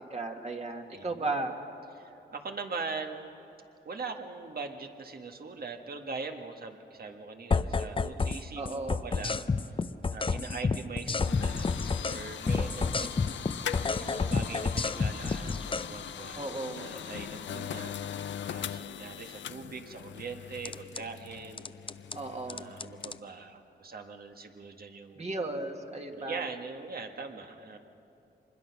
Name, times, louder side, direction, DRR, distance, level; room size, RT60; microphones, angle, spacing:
voice 1, 0.1-1.5 8.6-9.1 16.4-16.9 22.1-22.7 25.1-26.4, right 2 dB, 35° right, 2 dB, 1.9 m, -35 dB
voice 2, 0.9-1.4 2.0-3.3 3.8-9.5 10.1-11.7 12.0-13.2 13.9-16.5 16.8-18.0 18.4-21.7 22.5-25.3 26.1-27.8, right 4 dB, 55° right, 5 dB, 1.6 m, -41 dB
sound 1, 7.5-8.4 8.7-12.2 12.5-15.9 20.6-21.0 21.6-22.2 22.5-23.2, left 4 dB, 30° left, 0.6 m, -29 dB
sound 2, 10.4-23.2, left 9 dB, 85° left, 0.6 m, -41 dB
25.0 x 21.0 x 6.0 m, 2.8 s
cardioid pair, 75°, 19 cm